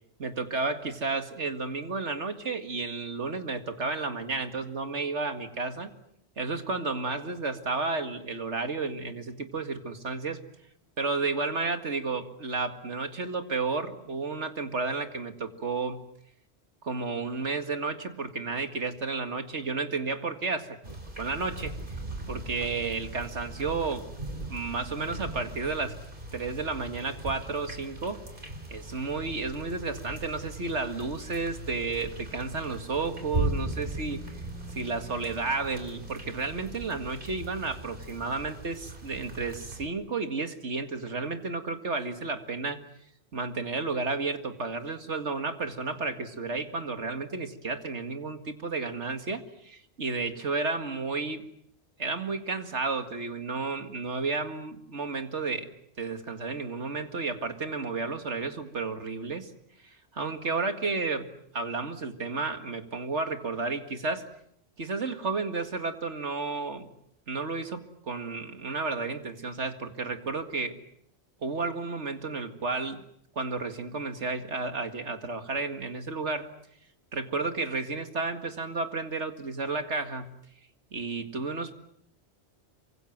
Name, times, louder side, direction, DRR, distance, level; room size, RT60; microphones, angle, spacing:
voice 1, 0.2-5.9 6.4-10.4 11.0-16.0 16.8-21.8 22.3-24.1 24.5-26.0 26.3-28.2 28.7-34.4 34.7-42.8 43.3-51.5 52.0-55.7 56.0-59.5 59.8-61.3 61.5-64.3 64.8-66.9 67.3-70.8 71.4-73.0 73.4-76.5 77.1-80.3 80.9-81.7, right 3 dB, 80° right, 8 dB, 2.3 m, -32 dB
sound 1, 20.8-39.9, right 1 dB, 45° right, 4.1 m, -39 dB
27.5 x 24.5 x 7.5 m, 0.69 s
omnidirectional pair, 1.2 m